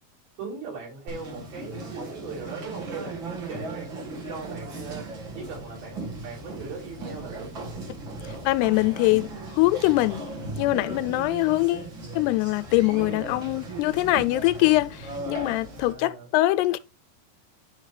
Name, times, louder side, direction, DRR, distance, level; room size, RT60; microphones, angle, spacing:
voice 1, 0.4-5.1 5.4-7.5 15.7-16.3, right 4 dB, 65° right, 6.0 m, -39 dB
Conversation, 1.1-15.9, right 2 dB, 50° right, 1.5 m, -37 dB
voice 2, 8.4-10.3 10.6-11.9 12.2-16.8, left 18 dB, 85° left, 2.6 m, -23 dB
11.0 x 3.9 x 3.2 m
omnidirectional pair, 4.7 m